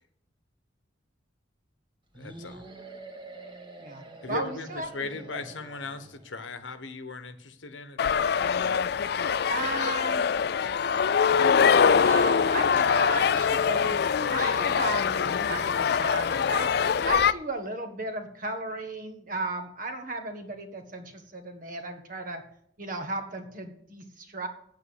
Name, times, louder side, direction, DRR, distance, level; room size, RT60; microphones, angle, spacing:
voice 1, 2.1-2.6 4.2-8.4, left 3 dB, 85° left, 10 dB, 1.2 m, -38 dB
sound 1, 2.1-6.3, right 2 dB, 25° right, 1.8 m, -46 dB
voice 2, 3.8-4.9 5.3-5.4 9.5-10.3 11.8-16.7 17.0-22.4 22.8-24.5, right 2 dB, 45° right, 6 dB, 1.6 m, -35 dB
sound 2, 8.0-17.3, left 6 dB, 55° left, 0.4 m, -23 dB
sound 3, 11.3-17.1, left 2 dB, 40° left, 1.2 m, -43 dB
8.9 x 8.6 x 8.1 m, 0.67 s
head